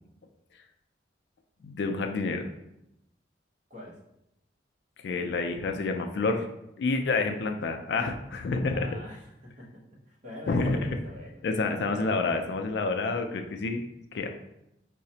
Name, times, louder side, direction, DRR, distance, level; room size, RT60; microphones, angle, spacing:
voice 1, 1.6-2.5 5.0-6.5 6.8-9.0 10.5-10.9 11.4-13.8 14.1-14.3, left 3 dB, 65° left, 6 dB, 0.3 m, -28 dB
voice 2, 8.7-11.4 14.1-14.3, left 1 dB, 45° right, -3 dB, 0.9 m, -45 dB
4.7 x 2.1 x 2.7 m, 0.84 s
head